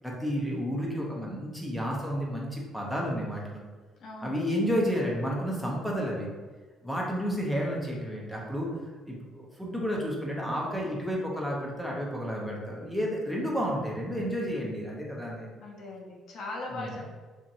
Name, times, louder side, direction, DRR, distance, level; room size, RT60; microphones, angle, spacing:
voice 1, 0.0-3.6 4.2-6.3 6.8-8.7 9.1-15.5 16.7-17.0, equal, ahead, -3 dB, 0.8 m, -31 dB
voice 2, 4.0-4.4 15.6-17.0, left 2 dB, 65° left, -2 dB, 0.6 m, -39 dB
2.8 x 2.6 x 2.6 m, 1.4 s
supercardioid pair, 75°, 0 cm